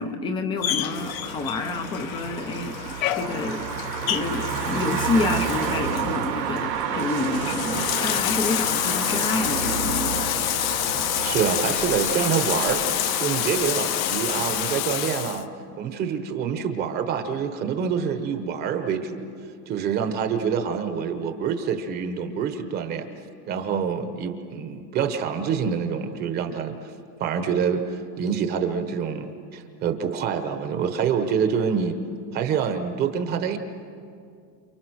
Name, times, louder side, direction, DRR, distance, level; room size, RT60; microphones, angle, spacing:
voice 1, 0.0-3.7 4.1-10.4, left 3 dB, 10° left, 9 dB, 0.6 m, -28 dB
Bathtub (filling or washing), 0.6-15.4, left 12 dB, 55° left, 1.2 m, -28 dB
sound 1, 0.8-14.8, right 9 dB, 85° right, 2.6 m, -31 dB
voice 2, 11.2-12.8 13.2-15.5 15.8-19.3 19.7-23.1 23.5-26.9 27.2-32.0 32.3-33.6, right 7 dB, 20° right, 7 dB, 1.0 m, -26 dB
29.0 x 28.5 x 6.3 m, 2.3 s
supercardioid pair, 165°, 48 cm